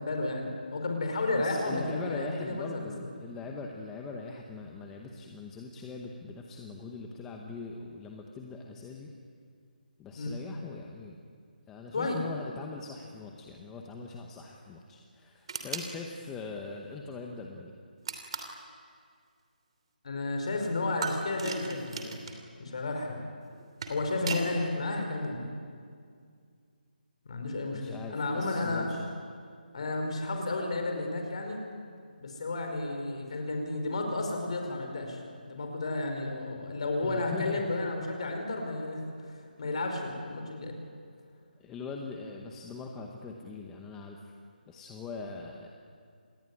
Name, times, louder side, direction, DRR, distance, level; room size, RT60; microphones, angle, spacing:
voice 1, 0.0-2.9 10.2-10.4 11.9-12.3 20.0-22.1 22.6-23.3 23.9-25.5 27.3-28.9 29.7-31.6 32.2-40.8, left 2 dB, 40° left, 3 dB, 5.1 m, -32 dB
voice 2, 1.4-9.1 10.0-11.2 11.7-17.7 27.7-29.1 37.0-37.8 41.6-44.3 44.7-45.7, left 4 dB, 5° left, 1 dB, 0.9 m, -42 dB
sound 1, 15.5-15.9 18.0-18.6 21.0-22.4 23.5-24.5, right 4 dB, 35° right, 3.0 m, -37 dB
27.0 x 20.5 x 9.8 m, 2.2 s
hypercardioid pair, 175°, 5 cm